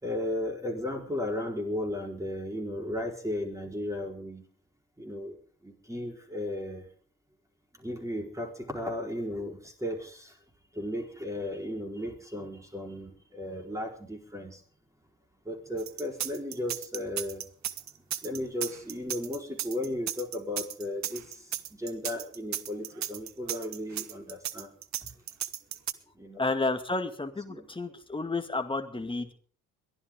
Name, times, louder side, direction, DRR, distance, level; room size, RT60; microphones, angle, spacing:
voice 1, 0.0-4.4 5.0-5.4 5.6-6.8 7.8-10.3 10.7-14.6 15.4-17.5 18.2-21.3 21.7-24.7 25.0-25.1 26.2-26.4 27.5-27.7 29.0-29.1, left 1 dB, 5° right, 3 dB, 4.6 m, -35 dB
sound 1, 15.8-25.9, right 10 dB, 40° right, 1.1 m, -35 dB
voice 2, 26.4-29.3, left 3 dB, 10° left, 7 dB, 2.2 m, -31 dB
22.5 x 14.5 x 3.8 m, 0.43 s
figure-of-eight pair, 50°, 44 cm